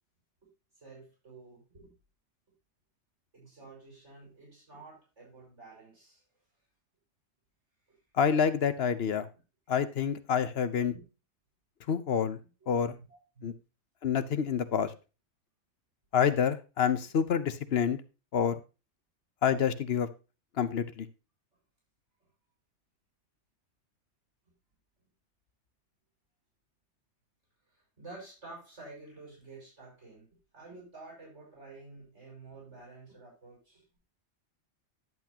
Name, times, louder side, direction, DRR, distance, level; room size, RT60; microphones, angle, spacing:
voice 1, 0.8-1.9 3.3-6.2 7.9-8.0 12.8-13.5 27.7-30.3 30.5-33.8, right 3 dB, 70° right, -4 dB, 6.8 m, -50 dB
voice 2, 8.2-9.3 9.7-10.9 11.9-12.4 12.7-12.9 13.4-13.5 14.0-14.9 16.1-18.0 18.3-18.5 19.4-20.1 20.6-21.1, left 7 dB, 60° left, 13 dB, 1.0 m, -27 dB
10.5 x 8.2 x 2.8 m, 0.30 s
omnidirectional pair, 1.2 m